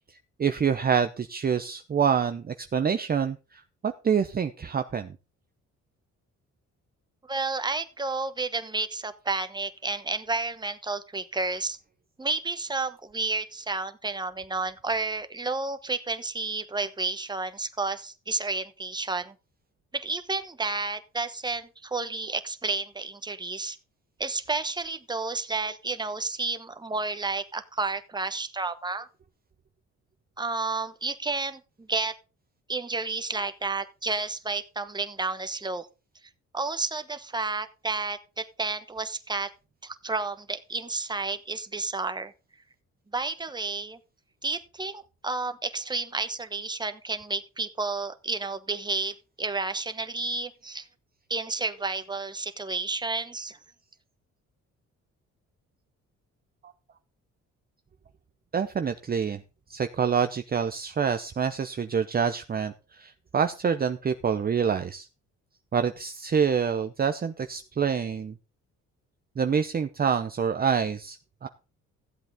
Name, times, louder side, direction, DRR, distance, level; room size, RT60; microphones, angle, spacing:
voice 1, 0.4-5.1 58.5-59.4 59.7-65.1 65.7-68.3 69.4-71.5, right 7 dB, 30° right, 8 dB, 0.7 m, -26 dB
voice 2, 7.3-11.8 12.2-19.3 19.9-23.8 24.2-29.1 30.4-32.1 32.7-35.9 36.5-39.5 39.8-42.3 43.1-44.0 44.4-50.9 51.3-53.6, right 3 dB, 15° right, 10 dB, 1.1 m, -31 dB
14.5 x 7.9 x 3.6 m, 0.31 s
cardioid pair, 90°, 30 cm